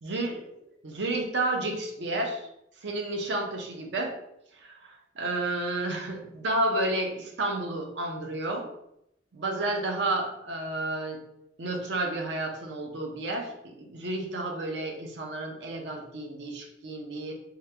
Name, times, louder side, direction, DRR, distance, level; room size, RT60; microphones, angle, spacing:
voice 1, 0.0-2.5 2.8-4.1 4.6-4.7 5.2-8.7 9.3-11.2 11.6-17.3, right 2 dB, 65° right, 3 dB, 0.6 m, -31 dB
3.1 x 2.4 x 3.3 m, 0.79 s
head